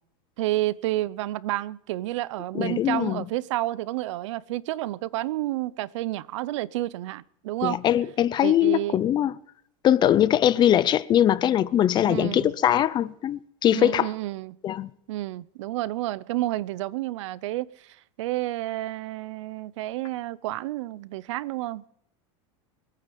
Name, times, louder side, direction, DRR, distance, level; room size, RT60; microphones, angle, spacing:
voice 1, 0.4-7.8 8.4-9.0 12.1-12.5 13.7-14.6 15.1-21.9, right 16 dB, 80° right, 0.7 m, -30 dB
voice 2, 2.5-3.3 7.6-9.3 9.8-14.1 14.6-14.9, left 11 dB, 30° left, 0.6 m, -21 dB
24.0 x 9.4 x 5.4 m
supercardioid pair, 140°, 15 cm